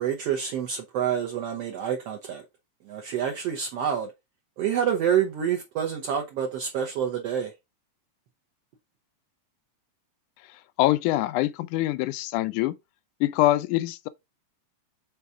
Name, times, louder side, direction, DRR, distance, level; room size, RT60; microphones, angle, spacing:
voice 1, 0.0-2.4 2.9-4.1 4.6-7.5, right 8 dB, 65° right, 1.7 m, -27 dB
voice 2, 10.8-12.8 13.2-14.1, left 16 dB, 85° left, 2.0 m, -24 dB
5.6 x 4.1 x 4.6 m
omnidirectional pair, 3.5 m